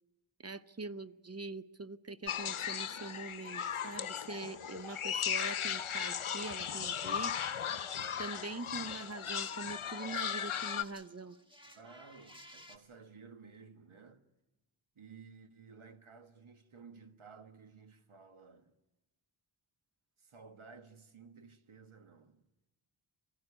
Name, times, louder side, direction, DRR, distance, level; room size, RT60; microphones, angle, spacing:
voice 1, 0.4-7.4 8.2-11.4, right 3 dB, 30° right, 0.7 m, -43 dB
sound 1, 2.3-10.8, left 8 dB, 80° left, 0.8 m, -37 dB
sound 2, 7.0-10.4 10.7-12.8, equal, 10° right, 1.8 m, -59 dB
voice 2, 11.7-14.2 14.9-18.7 20.2-22.4, right 5 dB, 80° right, 1.4 m, -55 dB
22.0 x 15.5 x 9.8 m
wide cardioid pair, 55°, 49 cm